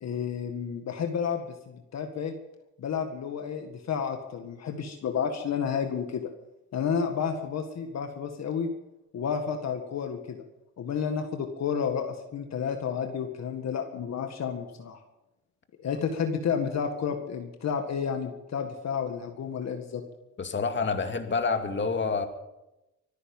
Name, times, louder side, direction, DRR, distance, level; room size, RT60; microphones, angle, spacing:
voice 1, 0.0-2.3 2.8-6.3 6.7-8.7 9.1-10.4 10.8-15.0 15.8-20.0, left 7 dB, 60° left, 5 dB, 1.8 m, -31 dB
voice 2, 20.4-22.3, left 4 dB, 40° left, 6 dB, 2.2 m, -28 dB
25.0 x 9.8 x 5.5 m, 0.94 s
cardioid pair, 90°, 30 cm